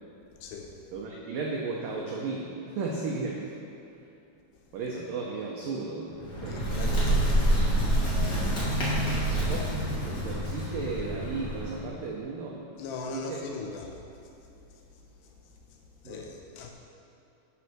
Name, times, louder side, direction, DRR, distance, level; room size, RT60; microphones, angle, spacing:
voice 1, 0.4-0.7 6.5-7.3 12.8-14.0 16.0-16.7, left 4 dB, 80° left, 2 dB, 2.7 m, -39 dB
voice 2, 0.9-3.5 4.7-6.6 9.1-12.6 13.1-13.4 16.0-16.3, right 4 dB, 90° right, -2 dB, 1.9 m, -35 dB
Bird, 6.1-11.8, right 1 dB, 50° left, 1.2 m, -27 dB
9.8 x 5.4 x 6.0 m, 2.8 s
omnidirectional pair, 5.1 m